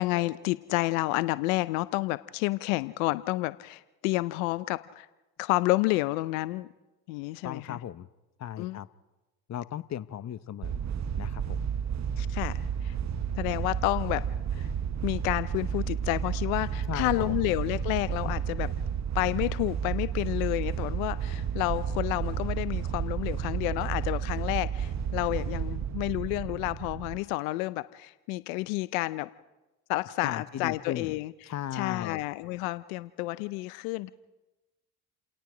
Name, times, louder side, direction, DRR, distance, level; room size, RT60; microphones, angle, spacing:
voice 1, 0.0-5.1 5.4-6.7 7.1-7.8 8.6-8.8 12.2-12.9 13.3-14.2 14.6-14.7 15.0-18.7 19.1-29.3 29.9-34.1, left 19 dB, 80° left, 16 dB, 0.7 m, -30 dB
voice 2, 7.4-8.1 8.4-8.9 9.5-10.8 11.2-11.7 16.9-17.4 30.2-31.1 31.5-32.2, left 10 dB, 40° left, 16 dB, 0.9 m, -36 dB
sound 1, 10.6-27.2, right 8 dB, 40° right, 1.0 m, -32 dB
30.0 x 18.0 x 5.0 m, 1.1 s
hypercardioid pair, 60°, 40 cm